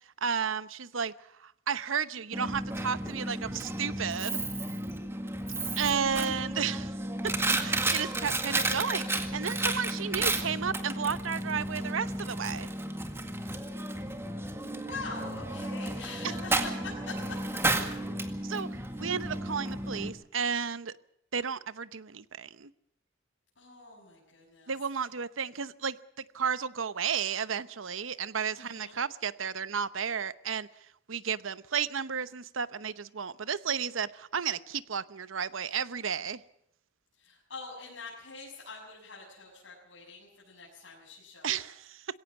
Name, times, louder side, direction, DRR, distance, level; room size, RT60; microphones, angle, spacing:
voice 1, 0.2-1.1 1.4-4.4 5.8-6.9 7.2-7.3 7.6-12.7 18.4-18.7 19.0-20.9 21.3-22.7 24.7-26.0 26.3-30.7 31.1-36.4 41.4-42.1, right 7 dB, 90° right, 0.9 m, -33 dB
Coin (dropping), 2.3-20.1, right 2 dB, 15° right, 2.0 m, -33 dB
voice 2, 14.9-17.1 18.3-18.4 23.5-24.7 28.5-29.0 37.2-41.6, left 3 dB, 70° left, 6.9 m, -44 dB
21.0 x 17.5 x 7.3 m
head